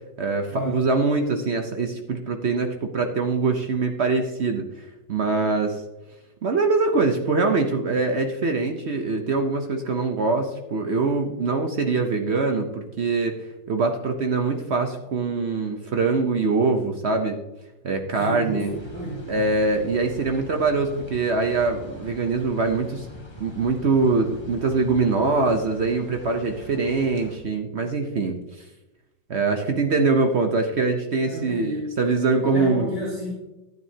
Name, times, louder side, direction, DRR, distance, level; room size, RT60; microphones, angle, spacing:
voice 1, 0.2-5.8 6.4-13.4 13.7-17.4 17.8-18.7 19.3-23.1 23.4-28.4 29.3-32.9, right 3 dB, 55° right, 5 dB, 0.7 m, -23 dB
voice 2, 18.1-19.5 31.3-31.9 32.4-33.3, equal, 25° right, -5 dB, 1.8 m, -31 dB
sound 1, 18.6-27.4, left 1 dB, 15° left, 1.1 m, -42 dB
12.0 x 9.3 x 2.8 m, 0.99 s
omnidirectional pair, 2.0 m